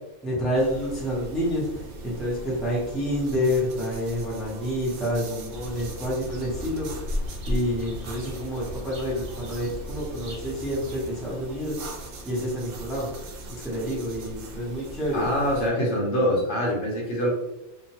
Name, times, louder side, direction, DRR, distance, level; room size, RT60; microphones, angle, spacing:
voice 1, 0.2-6.9 7.5-11.8 12.2-13.1 13.5-15.2, equal, ahead, -6 dB, 0.6 m, -28 dB
sound 1, 0.5-15.7, right 1 dB, 85° right, 1.0 m, -41 dB
sound 2, 5.5-11.2, left 1 dB, 65° right, 0.9 m, -35 dB
voice 2, 15.1-17.3, equal, 60° left, -3 dB, 1.0 m, -24 dB
2.8 x 2.2 x 2.8 m, 0.90 s
omnidirectional pair, 1.5 m